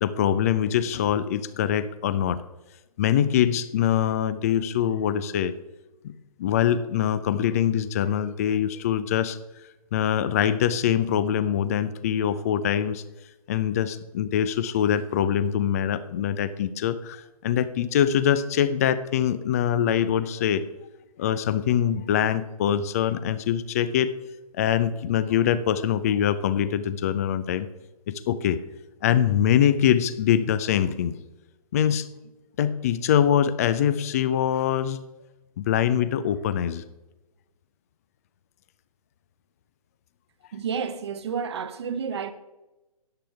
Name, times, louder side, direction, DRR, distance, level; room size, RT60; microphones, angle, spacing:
voice 1, 0.0-2.4 3.0-5.5 6.0-6.1 6.4-9.4 9.9-13.0 13.5-20.6 21.2-24.1 24.6-27.7 28.1-28.6 29.0-31.2 31.7-32.1 32.6-35.0 35.6-36.8, left 9 dB, 25° left, 0.4 m, -23 dB
voice 2, 40.5-42.3, right 6 dB, 45° right, 1.0 m, -30 dB
13.5 x 10.0 x 3.5 m
figure-of-eight pair, 130°, 20 cm